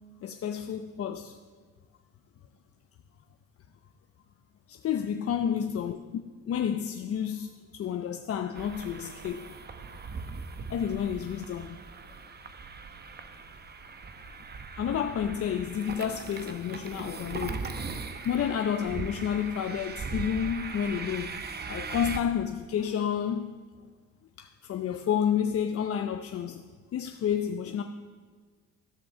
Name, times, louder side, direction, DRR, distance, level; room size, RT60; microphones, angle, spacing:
voice 1, 0.2-1.4 4.7-9.6 10.7-11.8 14.8-17.9 18.2-23.6 24.4-27.8, left 8 dB, 50° left, 0.6 m, -30 dB
sound 1, 8.5-22.2, right 4 dB, 35° right, 0.8 m, -39 dB
14.0 x 5.3 x 6.7 m
cardioid pair, 90°, 30 cm